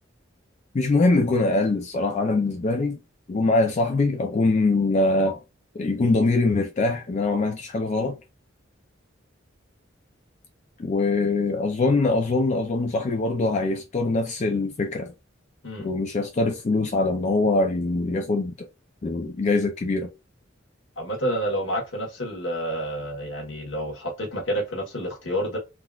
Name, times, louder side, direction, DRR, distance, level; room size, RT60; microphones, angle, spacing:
voice 1, 0.7-3.0 3.3-5.4 5.8-8.2 10.8-15.1 15.8-18.5 19.0-20.1, left 3 dB, 35° left, 0.4 m, -23 dB
voice 2, 21.0-25.6, equal, 65° left, 1.2 m, -29 dB
3.6 x 2.3 x 2.3 m
head